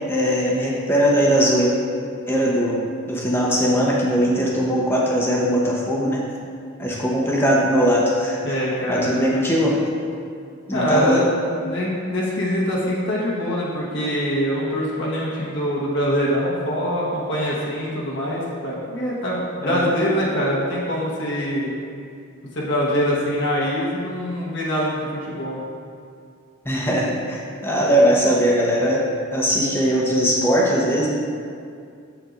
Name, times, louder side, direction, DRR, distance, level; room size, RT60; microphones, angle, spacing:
voice 1, 0.1-1.7 2.3-6.2 6.8-8.4 8.9-9.8 10.7-11.3 19.6-19.9 26.6-29.1 29.3-31.1, equal, 10° left, -3 dB, 0.9 m, -20 dB
voice 2, 8.4-9.2 10.7-11.2 11.6-21.7 22.5-25.6, equal, 55° left, -6 dB, 1.2 m, -24 dB
8.1 x 7.5 x 2.6 m, 2.3 s
head